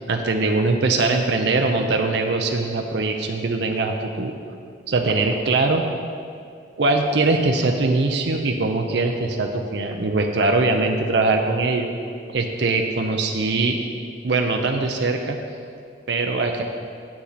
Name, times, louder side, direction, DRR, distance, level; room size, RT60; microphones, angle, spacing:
voice 1, 0.0-4.3 4.9-5.8 6.8-11.9 12.3-13.8 14.2-15.4 16.1-16.6, right 3 dB, 60° right, 3 dB, 0.6 m, -21 dB
8.6 x 8.1 x 4.1 m, 2.3 s
head